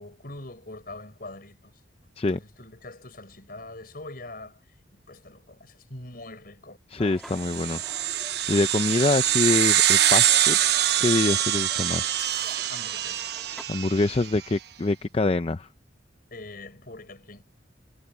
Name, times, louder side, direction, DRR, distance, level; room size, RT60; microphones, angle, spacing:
voice 1, 0.0-1.8 2.3-4.6 4.9-6.8 12.7-13.4 16.3-17.4, left 2 dB, 50° left, 5.2 m, -43 dB
voice 2, 6.9-7.8 8.5-10.6 11.0-12.0 13.7-15.7, left 2 dB, 30° left, 0.5 m, -25 dB
sound 1, 7.0-13.6, equal, ahead, 2.2 m, -49 dB
sound 2, 7.4-14.2, right 11 dB, 60° right, 0.9 m, -24 dB
head